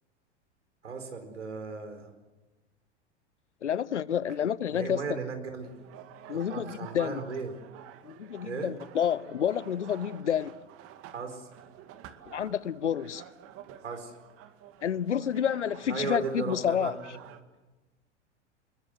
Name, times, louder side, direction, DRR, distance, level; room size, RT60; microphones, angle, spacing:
voice 1, 0.8-2.1 4.7-5.7 6.3-7.5 8.4-8.7 11.1-11.5 13.8-14.1 15.8-16.9, right 4 dB, 75° right, 4.7 m, -36 dB
voice 2, 3.6-5.0 6.3-7.2 8.0-10.5 12.3-13.2 14.8-16.9, left 9 dB, 75° left, 0.9 m, -29 dB
sound 1, 5.6-17.4, right 10 dB, 40° right, 2.3 m, -50 dB
27.0 x 22.0 x 7.9 m
figure-of-eight pair, 90°, 35 cm